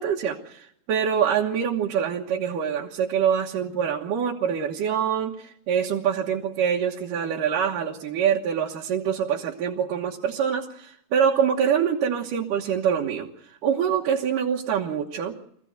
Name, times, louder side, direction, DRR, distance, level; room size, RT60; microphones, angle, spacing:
voice 1, 0.0-13.3 13.6-15.3, right 8 dB, 75° right, -2 dB, 2.9 m, -25 dB
24.0 x 15.5 x 8.0 m, 0.72 s
omnidirectional pair, 3.9 m